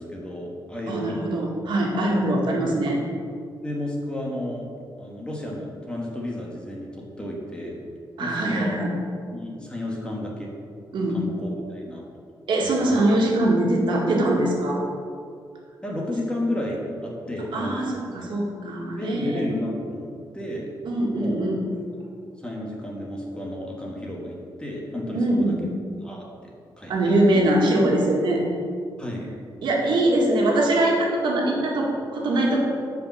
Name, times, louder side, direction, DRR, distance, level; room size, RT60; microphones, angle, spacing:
voice 1, 0.0-1.3 2.1-2.2 3.6-4.7 5.0-7.8 8.2-8.8 9.3-10.5 11.1-12.0 12.6-13.0 15.8-18.3 18.9-20.1 20.3-20.7 21.1-21.4 22.4-25.7 26.0-27.4 29.0-29.3, left 1 dB, 10° left, -2 dB, 1.5 m, -32 dB
voice 2, 0.9-3.0 8.2-8.9 10.9-11.2 12.5-14.8 17.5-17.9 18.1-19.5 20.8-21.6 25.1-25.6 26.9-28.4 29.6-32.6, right 1 dB, 75° right, -2 dB, 1.9 m, -22 dB
8.9 x 5.1 x 7.0 m, 2.3 s
wide cardioid pair, 175°, 8 cm